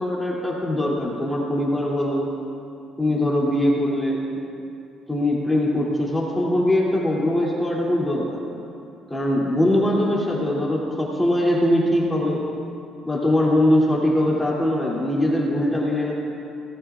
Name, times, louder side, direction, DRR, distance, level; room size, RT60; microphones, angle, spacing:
voice 1, 0.0-2.3 3.0-4.2 5.1-8.4 9.1-12.4 13.0-16.1, left 1 dB, 10° left, -5 dB, 2.7 m, -21 dB
24.5 x 18.5 x 2.4 m, 2.5 s
cardioid pair, 140°, 0 cm